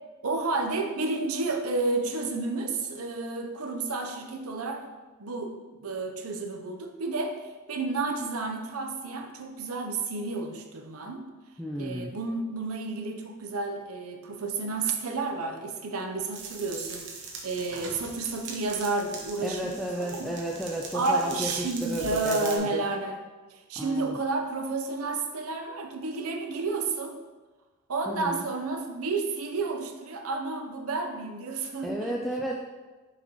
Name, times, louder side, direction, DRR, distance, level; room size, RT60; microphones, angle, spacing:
voice 1, 0.2-4.8 5.2-7.4 7.7-11.3 11.8-20.3 20.9-23.2 23.5-27.2 27.9-32.2, right 3 dB, 85° right, 4 dB, 0.7 m, -31 dB
voice 2, 11.6-12.1 19.4-22.8 23.8-24.2 28.1-28.4 31.8-32.6, right 1 dB, ahead, -3 dB, 0.3 m, -33 dB
sound 1, 16.3-22.6, right 4 dB, 55° right, 0.9 m, -41 dB
6.5 x 4.9 x 3.0 m, 1.3 s
head